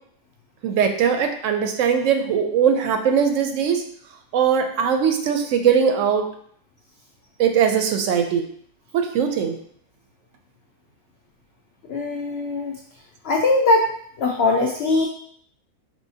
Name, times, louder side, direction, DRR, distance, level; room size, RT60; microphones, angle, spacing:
voice 1, 0.6-3.8 4.3-6.3 7.4-8.4 8.9-9.6, right 7 dB, 70° right, 6 dB, 0.8 m, -20 dB
voice 2, 11.9-12.7 13.2-13.9 14.2-15.1, left 3 dB, 80° left, 0 dB, 0.5 m, -20 dB
5.4 x 3.1 x 2.7 m, 0.63 s
omnidirectional pair, 1.6 m